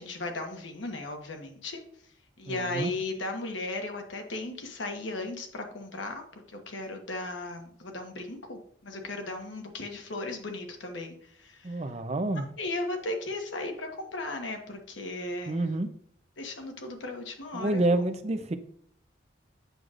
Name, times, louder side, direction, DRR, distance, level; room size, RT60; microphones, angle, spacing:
voice 1, 0.0-1.8 2.4-6.2 6.5-11.8 12.6-15.7 16.4-17.8, left 2 dB, 80° left, 4 dB, 1.2 m, -36 dB
voice 2, 2.5-2.9 11.6-12.5 15.5-15.9 17.5-18.6, right 2 dB, 35° right, 9 dB, 0.5 m, -28 dB
7.9 x 6.4 x 2.4 m, 0.65 s
head